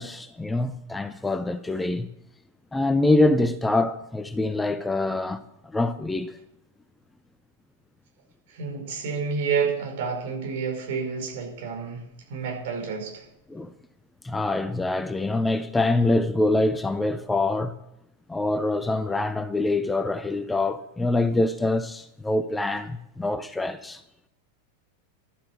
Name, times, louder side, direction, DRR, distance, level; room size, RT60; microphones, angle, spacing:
voice 1, 0.0-2.1 2.7-5.4 5.7-6.3 13.5-13.7 14.2-17.7 18.3-24.0, left 2 dB, 10° left, 0.7 m, -25 dB
voice 2, 8.5-12.0 12.3-13.2, right 5 dB, 50° right, 5.1 m, -29 dB
12.0 x 10.0 x 7.8 m
figure-of-eight pair, 90°, 0 cm